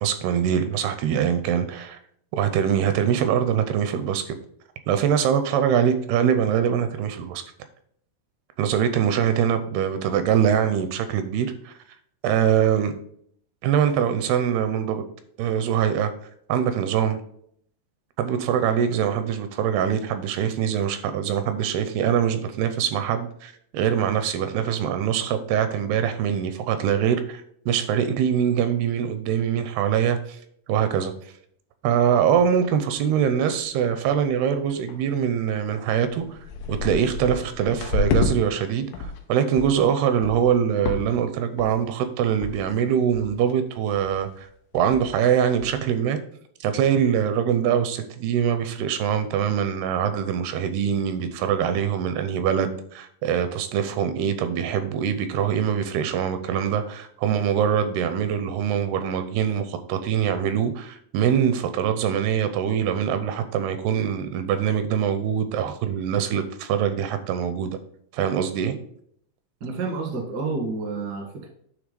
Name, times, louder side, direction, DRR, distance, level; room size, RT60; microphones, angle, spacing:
voice 1, 0.0-2.0 2.3-4.4 4.9-7.4 8.6-11.7 12.2-12.9 13.6-15.0 15.4-16.1 16.5-17.2 18.2-30.4 30.7-31.1 31.8-36.4 36.7-44.5 44.7-46.2 46.6-67.8 68.1-68.8, right 8 dB, 80° right, 9 dB, 2.5 m, -23 dB
sound 1, 32.3-32.4 32.9-33.0 33.3-33.7 34.0-34.3 34.9-35.0 35.6-35.7 36.0-38.3 38.7-39.2 39.6-39.8 40.2-40.5 40.9-41.3 41.6-41.9 42.4-42.5 42.8-42.9 43.1-43.5 44.0-44.2 44.4-44.5 44.7-45.2 45.6-45.7, left 4 dB, 80° left, 3.0 m, -29 dB
voice 2, 69.6-71.5, right 3 dB, 55° right, 2 dB, 1.1 m, -29 dB
9.5 x 3.5 x 5.1 m, 0.66 s
omnidirectional pair, 4.7 m